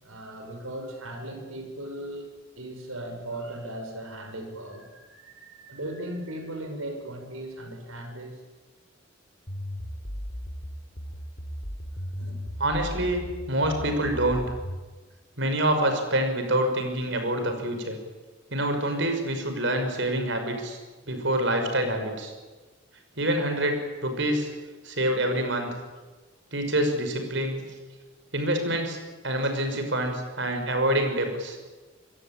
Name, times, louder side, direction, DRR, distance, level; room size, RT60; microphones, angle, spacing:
voice 1, 0.0-8.4 12.2-12.4, right 1 dB, 85° right, 5 dB, 6.7 m, -38 dB
sound 1, 9.5-14.8, equal, 50° left, 3.9 m, -36 dB
voice 2, 12.6-14.4 15.4-18.0 18.5-20.8 21.1-22.3 23.2-24.5 24.8-25.7 26.5-27.6 28.3-29.0 29.2-31.6, right 1 dB, 60° right, 6 dB, 5.8 m, -26 dB
26.0 x 22.0 x 9.0 m, 1.3 s
head